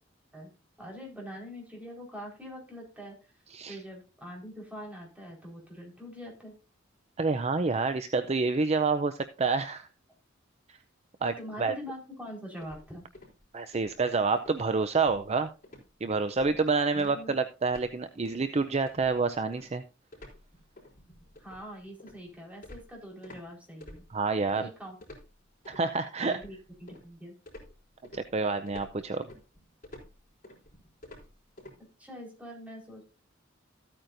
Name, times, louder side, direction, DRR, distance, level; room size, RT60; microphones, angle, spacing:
voice 1, 0.8-3.3 3.7-6.5 11.4-13.0 16.9-17.4 21.4-24.0 24.5-25.0 26.2-27.3 32.0-33.0, equal, 5° right, -1 dB, 4.4 m, -44 dB
voice 2, 7.2-9.9 10.7-10.8 11.2-11.8 13.5-15.5 16.0-19.8 24.1-24.7 25.7-26.4 28.1-29.3, right 4 dB, 35° right, 10 dB, 0.5 m, -28 dB
sound 1, 12.6-13.4 13.7-14.0 14.4-14.6 15.0-15.4 15.6-15.9 16.3-16.6 17.0-17.9 18.2-18.5 18.9-23.5 23.8-24.6 25.0-25.9 26.3-27.1 27.5-31.8, left 1 dB, 45° left, 4.1 m, -50 dB
14.0 x 8.9 x 2.6 m, 0.32 s
head